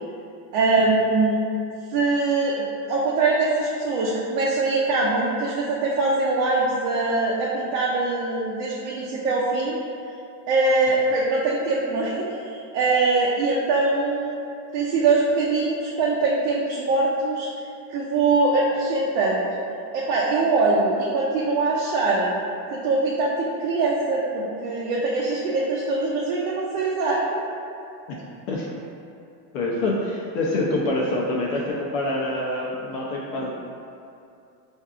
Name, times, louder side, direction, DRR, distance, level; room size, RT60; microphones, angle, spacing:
voice 1, 0.5-1.4 1.9-2.6 2.9-9.8 10.5-14.4 14.7-17.5 17.9-19.5 19.9-22.3 22.7-27.2, right 3 dB, 65° right, -5 dB, 0.7 m, -22 dB
voice 2, 28.1-28.7 29.5-33.5, left 2 dB, 55° left, -4 dB, 0.6 m, -26 dB
4.4 x 2.7 x 2.4 m, 2.6 s
supercardioid pair, 125°, 50 cm